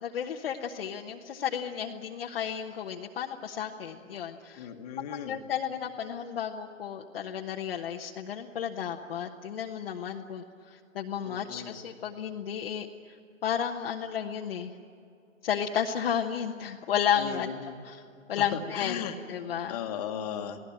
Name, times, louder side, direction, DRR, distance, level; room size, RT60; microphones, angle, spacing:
voice 1, 0.0-4.7 5.1-12.9 13.4-14.7 15.4-18.0 18.3-19.0 19.3-19.8, left 8 dB, 45° left, 1 dB, 1.3 m, -33 dB
voice 2, 4.6-5.4 11.2-11.8 17.2-17.8 18.3-19.2 19.7-20.6, left 8 dB, 30° left, 5 dB, 1.8 m, -36 dB
28.0 x 18.0 x 8.9 m, 2.5 s
hypercardioid pair, 150°, 39 cm